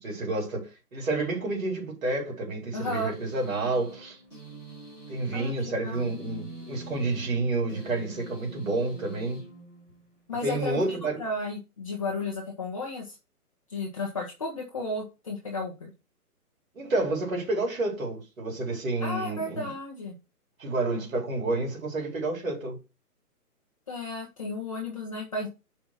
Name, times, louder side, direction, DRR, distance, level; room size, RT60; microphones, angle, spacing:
voice 1, 0.0-4.2 5.1-9.4 10.4-11.2 16.7-19.7 20.6-22.8, right 2 dB, 55° right, 4.1 m, -29 dB
voice 2, 2.7-3.1 5.3-6.1 10.3-13.1 13.7-15.9 19.0-20.1 23.9-25.5, left 2 dB, 20° left, 1.0 m, -33 dB
sound 1, 2.8-10.2, right 1 dB, 5° right, 1.6 m, -45 dB
5.8 x 4.2 x 5.8 m
hypercardioid pair, 175°, 46 cm